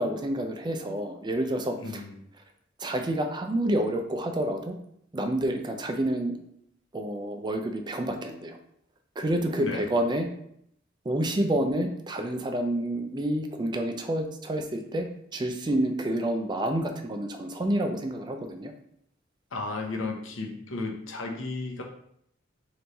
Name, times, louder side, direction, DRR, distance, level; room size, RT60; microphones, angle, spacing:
voice 1, 0.0-2.0 2.8-4.7 5.1-6.4 6.9-8.6 9.2-10.3 11.1-15.1 15.3-18.7, right 1 dB, 25° right, 5 dB, 0.4 m, -28 dB
voice 2, 1.8-2.3 9.6-9.8 19.5-21.8, left 3 dB, 80° left, 2 dB, 0.8 m, -34 dB
3.3 x 3.1 x 4.0 m, 0.71 s
head